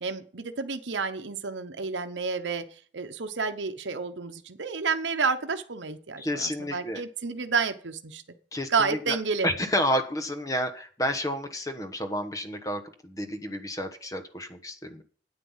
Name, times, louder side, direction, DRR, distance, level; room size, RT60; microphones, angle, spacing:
voice 1, 0.0-2.6 2.9-8.2 8.7-9.5, right 5 dB, 85° right, 7 dB, 0.9 m, -30 dB
voice 2, 6.2-7.0 8.5-9.2 9.4-15.0, equal, 20° left, 8 dB, 1.1 m, -30 dB
9.4 x 9.0 x 5.6 m, 0.43 s
head